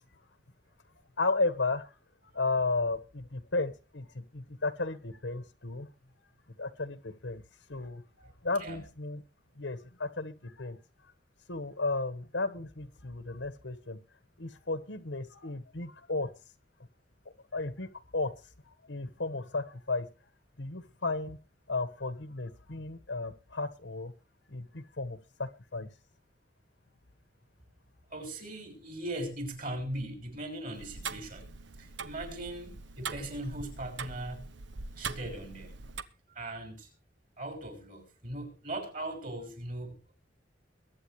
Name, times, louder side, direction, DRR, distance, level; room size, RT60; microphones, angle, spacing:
voice 1, 1.2-1.9 2.2-5.9 6.6-7.4 7.7-9.2 9.5-10.8 11.5-14.0 14.4-16.3 17.5-18.4 18.7-20.1 20.6-21.4 21.7-24.1 24.5-25.9, left 3 dB, 85° left, 1.6 m, -34 dB
voice 2, 28.1-31.5 31.8-34.5 35.0-35.8 36.3-36.9 37.4-40.0, right 1 dB, 50° right, 6.1 m, -39 dB
Tick-tock, 30.7-36.0, right 5 dB, 85° right, 1.0 m, -42 dB
22.5 x 9.1 x 3.3 m
head